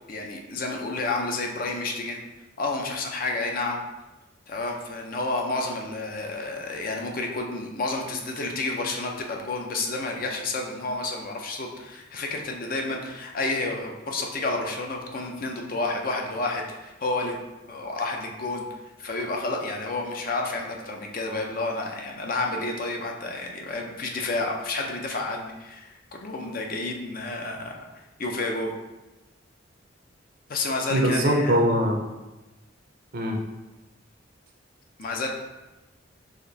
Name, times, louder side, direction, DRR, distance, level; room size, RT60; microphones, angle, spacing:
voice 1, 0.1-2.2 2.6-3.8 4.5-17.4 17.6-18.6 19.0-27.7 28.2-28.7 30.5-31.6 35.0-35.3, left 2 dB, 45° left, 1 dB, 0.6 m, -30 dB
voice 2, 30.9-32.0 33.1-33.4, equal, 45° right, 2 dB, 0.6 m, -22 dB
5.0 x 2.5 x 4.0 m, 1.1 s
head